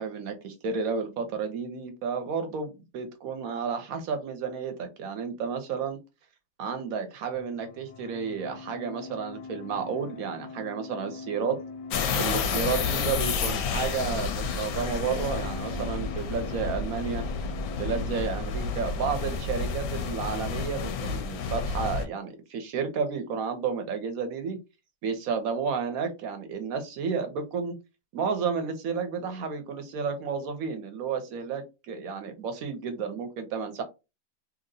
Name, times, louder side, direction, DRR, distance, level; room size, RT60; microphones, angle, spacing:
voice 1, 0.0-6.0 6.6-11.6 12.2-17.2 17.8-24.6 25.0-27.8 28.1-33.8, right 5 dB, 65° right, 1.0 m, -31 dB
sound 1, 7.3-18.5, left 4 dB, 90° left, 1.2 m, -43 dB
sound 2, 11.9-22.1, left 5 dB, 70° left, 1.0 m, -30 dB
2.9 x 2.7 x 2.6 m
omnidirectional pair, 1.8 m